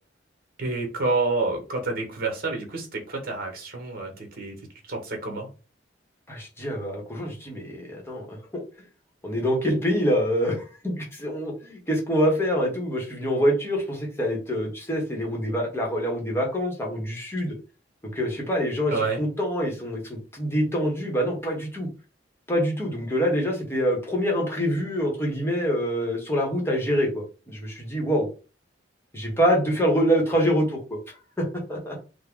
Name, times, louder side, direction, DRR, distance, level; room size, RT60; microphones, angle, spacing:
voice 1, 0.6-4.5 4.9-5.5 18.9-19.2, right 3 dB, 50° right, 3 dB, 1.1 m, -28 dB
voice 2, 6.3-8.6 9.2-17.5 18.0-21.9 22.5-28.3 29.1-32.0, equal, 15° left, -1 dB, 0.9 m, -25 dB
3.5 x 2.1 x 3.6 m, 0.34 s
head